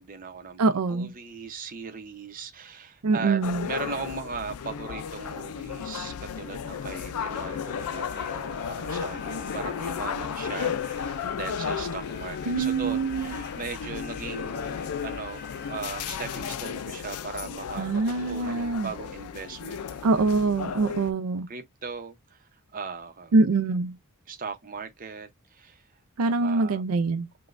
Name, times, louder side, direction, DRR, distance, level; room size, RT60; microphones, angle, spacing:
voice 1, 0.0-17.9 18.3-20.2 21.5-23.3 24.3-25.9 26.2-26.8, right 5 dB, 40° right, 0.7 m, -38 dB
voice 2, 0.6-1.1 3.0-3.7 12.5-13.4 17.8-18.9 20.0-21.5 23.3-24.0 26.2-27.3, right 3 dB, 75° right, 0.4 m, -24 dB
sound 1, 3.4-21.1, left 7 dB, 85° left, 0.4 m, -34 dB
sound 2, 7.7-16.2, left 6 dB, 50° left, 0.7 m, -44 dB
5.0 x 2.2 x 2.5 m
head